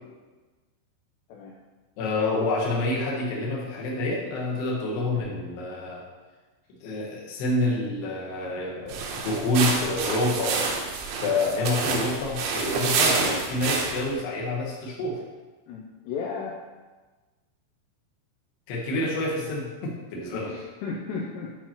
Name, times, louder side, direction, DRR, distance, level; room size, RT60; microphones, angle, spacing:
voice 1, 2.0-6.0 6.8-10.6 11.2-15.2 18.7-20.6, left 2 dB, 70° left, -5 dB, 2.8 m, -28 dB
sound 1, 8.9-14.1, right 4 dB, 85° right, 2.6 m, -28 dB
voice 2, 15.7-16.6 20.3-21.6, left 5 dB, 90° left, -2 dB, 2.4 m, -34 dB
9.8 x 4.6 x 2.9 m, 1.3 s
omnidirectional pair, 5.7 m